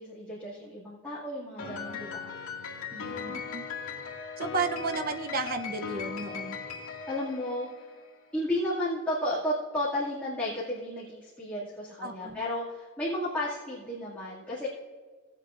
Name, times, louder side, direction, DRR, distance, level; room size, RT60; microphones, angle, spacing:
voice 1, 0.0-2.3 2.9-3.4 7.1-7.7 8.3-14.7, left 1 dB, 5° left, -11 dB, 2.2 m, -33 dB
Piano, 1.6-8.1, left 6 dB, 75° left, 2.1 m, -38 dB
voice 2, 1.6-2.0 3.3-3.6 4.4-6.6 12.0-12.4, right 4 dB, 40° right, 7 dB, 0.7 m, -33 dB
18.0 x 8.1 x 2.5 m, 1.5 s
head